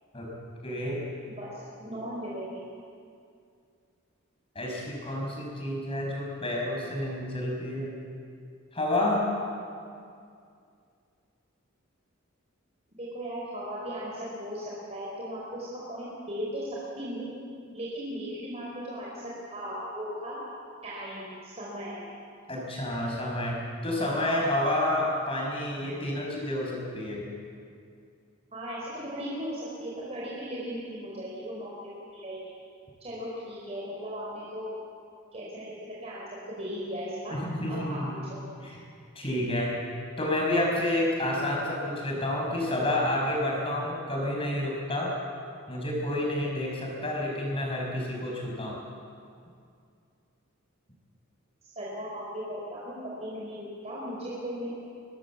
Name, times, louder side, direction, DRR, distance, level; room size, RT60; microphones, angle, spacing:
voice 1, 0.6-1.0 4.5-7.9 8.7-9.3 22.5-27.2 37.3-38.1 38.6-38.8 39.1-39.8 40.2-45.2 45.7-48.8, left 1 dB, 25° left, -2 dB, 5.8 m, -29 dB
voice 2, 1.4-2.7 13.0-16.7 17.0-17.3 17.7-20.4 20.8-22.0 28.5-32.4 33.0-34.7 35.3-35.7 36.0-37.3 37.7-38.0 38.3-38.4 51.6-54.7, equal, 30° right, -6 dB, 4.5 m, -37 dB
24.0 x 19.0 x 7.4 m, 2.4 s
head